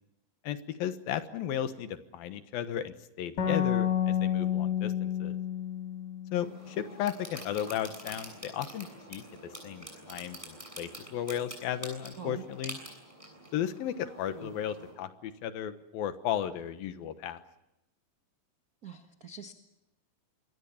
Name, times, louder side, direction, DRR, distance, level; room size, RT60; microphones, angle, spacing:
voice 1, 0.4-5.4 6.3-12.8 13.5-17.4, left 10 dB, 80° left, 10 dB, 3.0 m, -35 dB
sound 1, 3.4-6.9, left 9 dB, 60° left, 4.6 m, -30 dB
sound 2, 6.3-14.9, right 1 dB, 10° right, 6.9 m, -47 dB
voice 2, 12.2-12.5 14.3-14.5 18.8-19.5, right 5 dB, 80° right, 6 dB, 0.8 m, -44 dB
27.0 x 22.0 x 7.1 m, 0.90 s
omnidirectional pair, 4.2 m